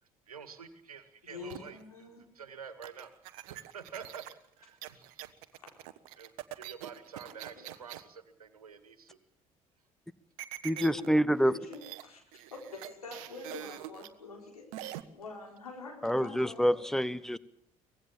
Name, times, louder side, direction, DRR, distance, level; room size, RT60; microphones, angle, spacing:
voice 1, 0.0-2.1 2.3-3.1 3.5-5.2 6.2-9.2, right 7 dB, 80° right, 1.8 m, -48 dB
voice 2, 1.2-2.2 5.5-5.7 7.3-7.7 10.7-12.2 12.5-16.8, left 3 dB, 85° left, 4.2 m, -46 dB
sound 1, 1.5-1.8 2.8-8.1 10.4-11.1 11.4-11.5 11.7-12.0 12.3-14.1 14.7-15.0, right 15 dB, 65° right, 1.1 m, -44 dB
voice 3, 10.6-11.6 16.0-17.4, equal, ahead, 1.1 m, -27 dB
24.0 x 18.5 x 7.3 m
figure-of-eight pair, 50°, 19 cm